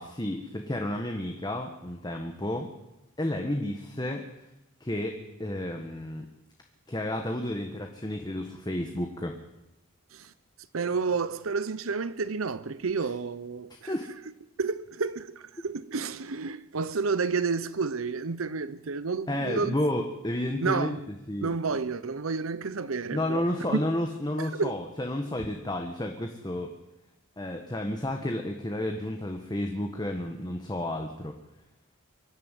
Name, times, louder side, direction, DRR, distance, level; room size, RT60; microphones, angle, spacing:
voice 1, 0.0-2.7 3.2-4.3 4.8-6.3 6.9-9.3 13.7-14.1 19.3-21.0 21.3-21.5 23.1-26.7 27.4-31.4, left 1 dB, 20° left, 1.5 m, -31 dB
voice 2, 10.7-13.9 14.6-19.8 20.6-21.0 21.4-23.8 24.4-24.8, right 4 dB, 90° right, 0.8 m, -30 dB
24.0 x 12.0 x 9.2 m
head